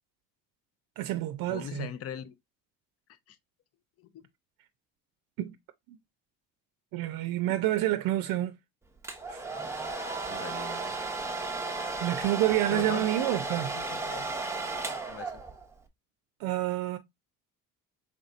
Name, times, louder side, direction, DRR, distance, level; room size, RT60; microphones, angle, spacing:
voice 1, 1.0-1.9 5.4-5.5 5.9-6.0 6.9-8.5 9.3-9.4 12.0-13.7 16.4-17.0, right 14 dB, 85° right, 0.5 m, -28 dB
voice 2, 1.5-2.3 3.1-3.4 4.0-4.3 10.3-11.0 12.7-13.4 13.7-14.5 14.9-15.4, left 10 dB, 45° left, 0.5 m, -41 dB
Domestic sounds home sounds, 9.0-15.7, right 3 dB, 10° right, 0.6 m, -34 dB
4.0 x 3.6 x 2.4 m
cardioid pair, 120°, 33 cm